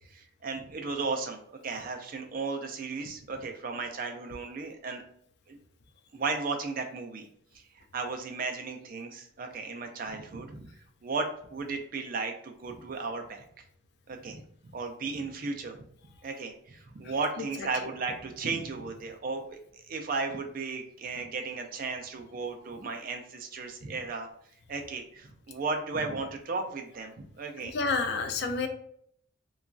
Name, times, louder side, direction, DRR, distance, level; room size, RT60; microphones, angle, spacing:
voice 1, 0.1-5.0 5.5-5.6 6.1-7.3 7.9-10.7 11.0-13.4 14.1-15.8 16.2-24.3 24.7-27.7, right 4 dB, 40° right, 4 dB, 0.4 m, -35 dB
voice 2, 17.0-17.9 27.6-28.7, left 4 dB, 55° left, 7 dB, 0.3 m, -31 dB
2.9 x 2.3 x 2.5 m, 0.66 s
head